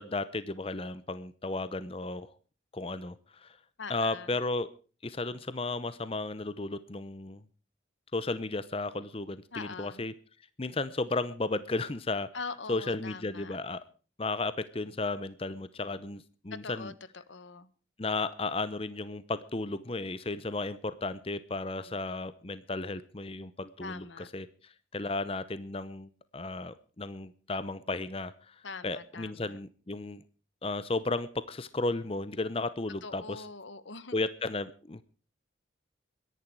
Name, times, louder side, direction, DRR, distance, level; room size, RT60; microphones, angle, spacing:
voice 1, 0.0-2.3 2.7-3.6 3.9-4.7 5.0-7.4 8.1-10.1 10.6-12.3 12.7-13.8 14.2-16.9 18.0-24.0 24.3-30.2 30.6-33.4 34.1-35.0, left 2 dB, 30° left, 14 dB, 0.7 m, -34 dB
voice 2, 3.8-4.4 9.5-10.0 12.3-13.6 16.5-17.7 21.7-22.0 23.8-24.3 28.6-29.6 33.0-34.2, left 4 dB, 75° left, 15 dB, 1.3 m, -43 dB
22.5 x 11.0 x 4.7 m, 0.39 s
head